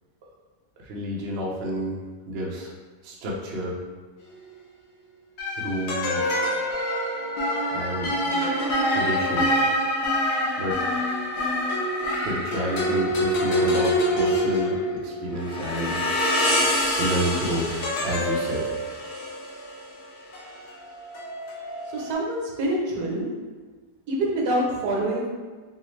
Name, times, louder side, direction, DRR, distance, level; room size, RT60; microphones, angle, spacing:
voice 1, 0.8-2.0 2.3-2.7 3.0-3.8 5.5-6.6 7.7-8.5 8.9-9.6 10.6-10.8 12.2-16.0 17.0-18.7, right 1 dB, 55° right, -3 dB, 0.8 m, -30 dB
sound 1, 4.2-4.5 5.4-22.1, equal, 85° left, 1.4 m, -26 dB
voice 2, 21.9-23.3 24.1-25.3, right 1 dB, 80° right, -2 dB, 1.4 m, -26 dB
5.9 x 2.0 x 3.1 m, 1.4 s
omnidirectional pair, 1.7 m